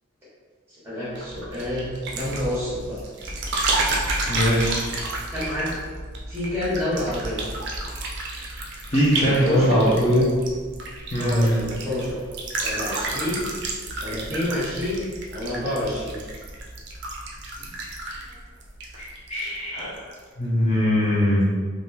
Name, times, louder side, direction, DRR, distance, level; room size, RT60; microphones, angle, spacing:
voice 1, 0.7-3.0 5.3-5.8 6.3-7.4 9.1-9.9 11.2-12.2 12.6-13.5 14.0-16.2 18.3-18.4, left 1 dB, 10° right, -9 dB, 1.2 m, -28 dB
sound 1, 1.1-19.5 19.8-20.2, right 2 dB, 50° right, 0.5 m, -31 dB
voice 2, 4.3-4.8 8.9-10.3 11.1-11.5 18.9-19.0 19.3-19.9 20.4-21.5, equal, 30° left, -8 dB, 0.5 m, -21 dB
3.5 x 2.4 x 2.7 m, 1.5 s
head